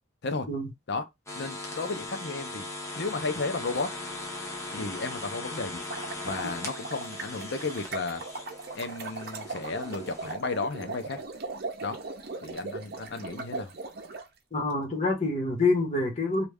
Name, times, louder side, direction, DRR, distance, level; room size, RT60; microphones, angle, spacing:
sound 1, 1.3-10.3, left 2 dB, 15° left, 0.7 m, -39 dB
voice 1, 1.4-2.7 3.0-3.9 4.7-5.8 6.2-8.2 8.7-11.2 11.8-12.0 12.4-13.7, left 3 dB, 60° left, 0.6 m, -33 dB
sound 2, 5.7-14.2, right 3 dB, 55° right, 0.7 m, -39 dB
voice 2, 14.5-16.4, left 2 dB, 35° left, 1.4 m, -26 dB
3.1 x 2.5 x 3.4 m
head